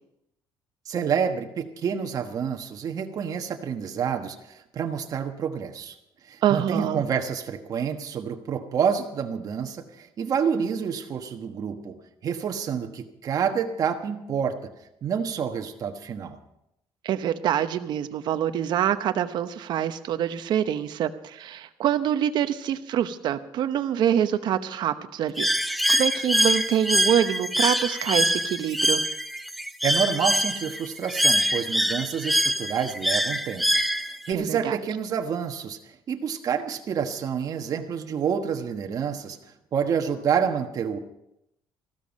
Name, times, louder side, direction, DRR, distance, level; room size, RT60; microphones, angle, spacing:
voice 1, 0.8-5.9 6.2-12.0 12.2-14.7 15.0-16.4 29.8-33.6 34.0-35.8 36.1-39.4 39.7-41.0, right 7 dB, 45° right, 4 dB, 1.3 m, -28 dB
voice 2, 6.4-7.0 17.0-29.0 34.3-34.7, right 10 dB, 60° right, 10 dB, 0.9 m, -25 dB
Bird, 25.4-34.3, equal, ahead, 0.7 m, -24 dB
15.0 x 13.0 x 5.3 m, 0.83 s
cardioid pair, 120°, 8 cm